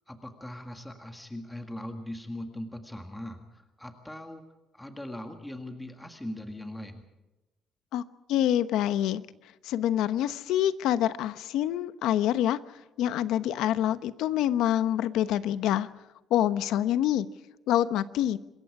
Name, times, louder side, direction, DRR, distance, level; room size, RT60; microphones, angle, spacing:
voice 1, 0.1-4.4 4.7-7.0, left 1 dB, 5° left, 5 dB, 1.8 m, -40 dB
voice 2, 8.3-9.2 9.6-12.6 13.0-15.9 16.3-17.3 17.7-18.4, left 11 dB, 80° left, 13 dB, 1.0 m, -26 dB
26.5 x 22.0 x 4.9 m, 1.0 s
cardioid pair, 180°, 0 cm